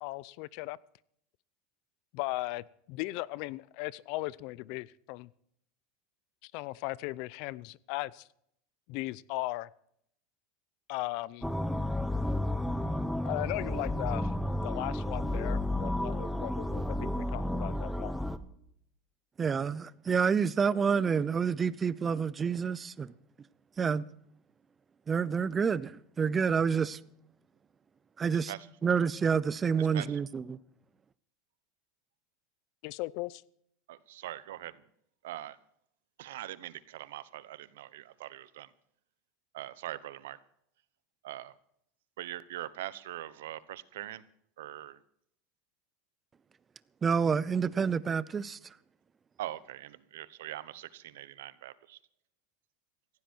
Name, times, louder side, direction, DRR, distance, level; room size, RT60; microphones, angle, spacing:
voice 1, 0.0-0.8 2.1-5.3 6.4-8.3 8.9-9.7 10.9-11.5 13.2-18.2 32.8-33.4, left 19 dB, 60° left, 0.6 m, -37 dB
sound 1, 11.4-18.4, left 1 dB, ahead, 0.9 m, -32 dB
voice 2, 19.4-23.1 23.8-24.0 25.1-27.0 28.2-28.5 28.8-30.6 47.0-48.6, right 6 dB, 20° right, 0.6 m, -28 dB
voice 3, 29.8-30.2 33.9-34.8 35.2-35.6 36.2-38.7 39.5-40.4 41.2-41.5 42.2-44.2 44.6-45.0 49.4-52.0, right 14 dB, 90° right, 1.0 m, -42 dB
17.5 x 15.5 x 4.6 m
supercardioid pair, 145°, 0 cm